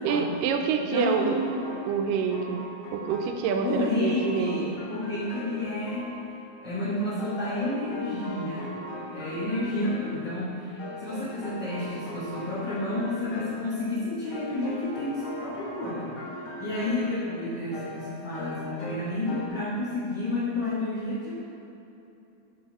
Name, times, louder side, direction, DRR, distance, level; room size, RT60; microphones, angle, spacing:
voice 1, 0.0-1.4 1.9-2.7 2.9-4.6, right 6 dB, 75° right, 5 dB, 2.2 m, -27 dB
voice 2, 0.8-1.6 3.6-6.2 6.6-8.8 9.1-16.2 16.6-21.3, left 1 dB, 40° left, -10 dB, 2.0 m, -30 dB
sound 1, 1.1-3.9 4.2-19.5, left 1 dB, 70° left, 3.5 m, -40 dB
14.5 x 6.6 x 4.3 m, 2.9 s
omnidirectional pair, 4.4 m